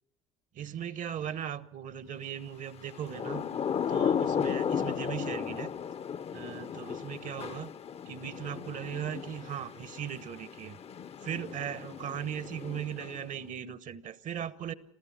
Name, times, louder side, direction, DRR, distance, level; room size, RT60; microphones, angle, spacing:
voice 1, 0.5-3.4 3.9-5.7 6.3-7.7 8.0-10.8 11.2-14.7, right 9 dB, 55° right, 1.1 m, -38 dB
Thunder / Rain, 2.9-13.4, left 7 dB, 40° left, 0.7 m, -35 dB
27.0 x 15.0 x 7.3 m
hypercardioid pair, 75°, 16 cm